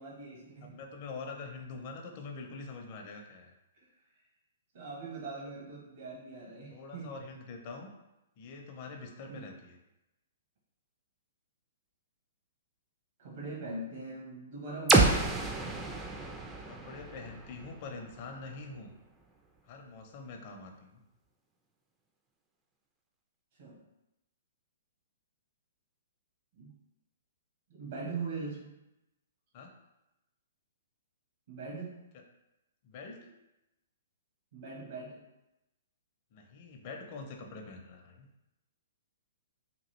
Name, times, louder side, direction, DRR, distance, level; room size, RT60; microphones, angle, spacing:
voice 1, 0.0-0.8 3.7-3.9 4.7-7.2 9.3-9.5 13.2-15.5 23.6-23.8 26.5-26.7 27.7-28.7 31.5-32.0 34.5-35.2, right 3 dB, 65° right, -4 dB, 1.0 m, -41 dB
voice 2, 0.6-3.5 5.4-5.5 6.7-7.9 8.4-9.8 16.6-18.9 19.7-21.0 29.5-29.7 32.1-32.2 32.8-33.3 36.3-38.3, left 4 dB, 45° left, 3 dB, 0.5 m, -45 dB
sound 1, 14.9-18.7, right 3 dB, 10° right, 0.3 m, -29 dB
3.0 x 2.4 x 3.0 m, 0.94 s
hypercardioid pair, 135°, 0 cm